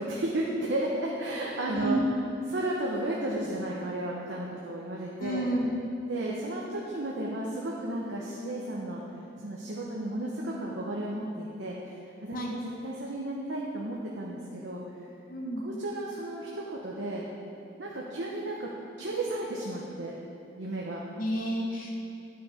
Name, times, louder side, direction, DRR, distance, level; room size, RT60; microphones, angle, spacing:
voice 1, 0.0-2.0 2.5-5.5 6.1-9.0 9.4-12.6 12.8-14.8 15.6-17.2 17.8-18.7 19.0-20.1 20.6-21.0, right 1 dB, 80° right, -4 dB, 1.0 m, -33 dB
voice 2, 1.7-2.0 5.2-5.7 12.3-12.5 15.3-15.6 21.2-21.9, right 1 dB, 45° left, -2 dB, 1.3 m, -30 dB
10.5 x 5.8 x 5.0 m, 2.6 s
head